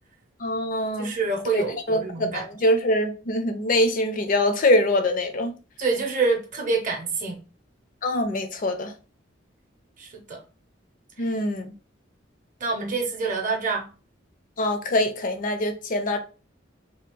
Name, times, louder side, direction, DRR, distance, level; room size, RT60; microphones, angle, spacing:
voice 1, 0.4-1.1 1.5-5.6 8.0-8.9 11.2-11.7 14.6-16.2, left 1 dB, 45° left, 0.5 m, -24 dB
voice 2, 1.0-2.4 5.8-7.4 10.0-10.4 12.6-13.9, right 4 dB, 45° right, 0.6 m, -26 dB
2.8 x 2.3 x 3.6 m
head